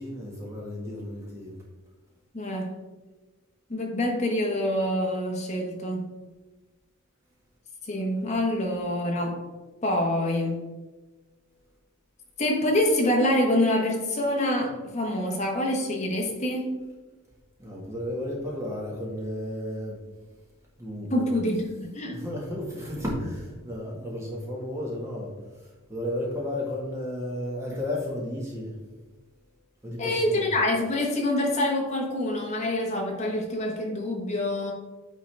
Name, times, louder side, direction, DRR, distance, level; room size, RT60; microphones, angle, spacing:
voice 1, 0.0-1.5 17.6-20.0 20.8-21.4 22.1-28.7 29.8-30.5, left 1 dB, 10° right, -4 dB, 1.5 m, -33 dB
voice 2, 2.3-2.8 3.7-6.2 7.8-9.4 9.8-10.7 12.4-16.8 21.1-22.2 30.0-34.7, left 1 dB, 30° left, 0 dB, 1.1 m, -26 dB
8.9 x 3.9 x 3.3 m, 1.2 s
head